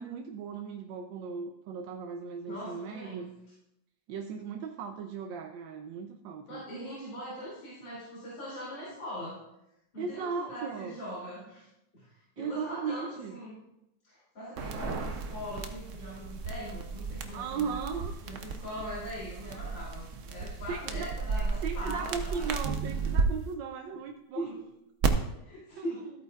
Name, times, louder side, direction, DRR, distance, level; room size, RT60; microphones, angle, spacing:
voice 1, 0.0-3.3 4.1-6.6 10.0-10.9 12.4-13.4 17.3-18.1 20.7-21.1 21.6-24.5 25.8-26.1, right 5 dB, 90° right, 5 dB, 1.3 m, -37 dB
voice 2, 2.4-3.3 6.5-9.4 9.9-11.7 11.9-13.6 14.0-17.8 18.2-22.5 24.3-24.6 25.4-26.1, equal, 80° left, -9 dB, 3.8 m, -41 dB
sound 1, 14.6-23.2 25.0-25.1, right 5 dB, 55° right, 0.9 m, -34 dB
14.5 x 8.6 x 2.4 m, 0.86 s
omnidirectional pair, 2.0 m